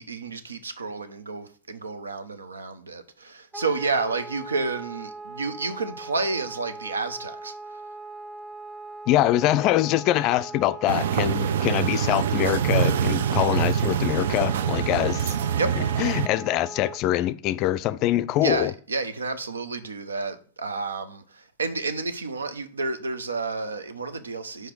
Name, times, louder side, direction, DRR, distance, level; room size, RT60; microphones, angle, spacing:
voice 1, 0.0-7.8 15.6-15.8 18.4-24.7, right 3 dB, 80° right, 0.8 m, -30 dB
Wind instrument woodwind instrument, 3.5-17.0, right 3 dB, 10° right, 1.1 m, -40 dB
voice 2, 9.1-15.4 16.0-18.7, left 14 dB, 40° left, 0.4 m, -24 dB
sound 1, 10.9-16.3, right 8 dB, 65° right, 0.4 m, -25 dB
4.9 x 4.6 x 6.0 m
figure-of-eight pair, 100°, 0 cm